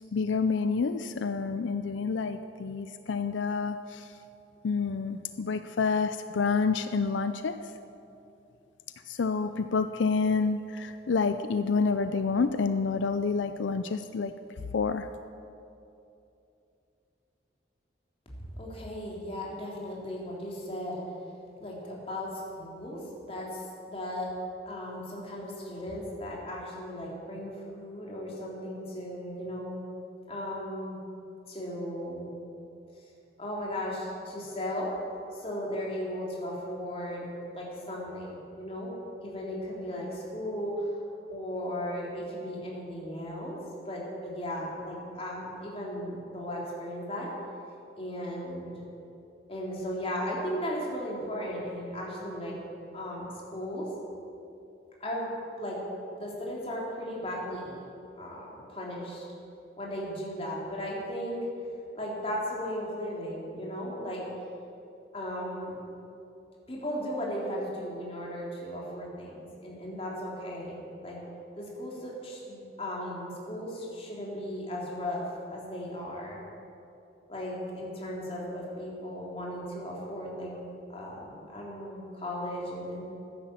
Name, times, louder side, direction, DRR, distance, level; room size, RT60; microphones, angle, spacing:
voice 1, 0.1-4.2 4.6-7.6 9.1-14.3 14.7-15.1, left 4 dB, 80° left, 10 dB, 0.5 m, -28 dB
voice 2, 18.6-21.0 21.6-24.3 24.7-29.8 30.3-31.0 31.5-32.3 33.4-34.9 35.3-38.9 39.2-40.9 41.3-43.6 43.8-47.3 48.0-48.8 49.5-52.6 52.9-53.9 55.0-55.3 55.6-55.8 56.2-57.8 58.2-59.2 59.8-61.4 61.9-64.2 65.1-65.8 66.7-71.2 71.6-76.4 77.3-80.6 80.9-83.0, equal, 30° left, -3 dB, 3.1 m, -36 dB
14.5 x 10.0 x 7.3 m, 2.7 s
head